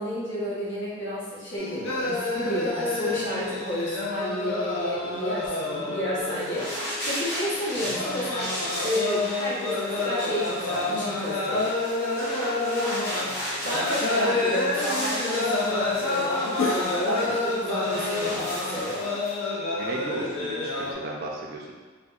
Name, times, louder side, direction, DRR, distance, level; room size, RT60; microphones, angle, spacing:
voice 1, 0.0-11.7 13.6-19.1, equal, 65° left, -7 dB, 0.8 m, -31 dB
sound 1, 1.6-20.9, left 2 dB, 80° left, 0.4 m, -29 dB
sound 2, 6.2-19.3, equal, 15° left, 0.6 m, -35 dB
voice 2, 19.7-21.7, right 2 dB, 50° right, -1 dB, 0.3 m, -35 dB
2.6 x 2.1 x 2.3 m, 1.4 s
head